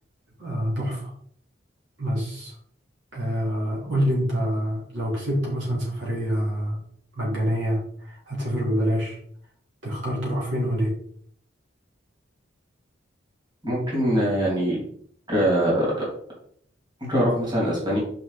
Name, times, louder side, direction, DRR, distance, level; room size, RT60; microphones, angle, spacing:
voice 1, 0.4-1.1 2.0-2.6 3.1-6.8 7.1-9.2 9.8-10.9, equal, 70° right, -5 dB, 3.2 m, -26 dB
voice 2, 13.6-14.8 15.3-15.9 17.0-18.0, equal, 25° right, -5 dB, 2.9 m, -22 dB
6.0 x 5.5 x 4.2 m, 0.62 s
head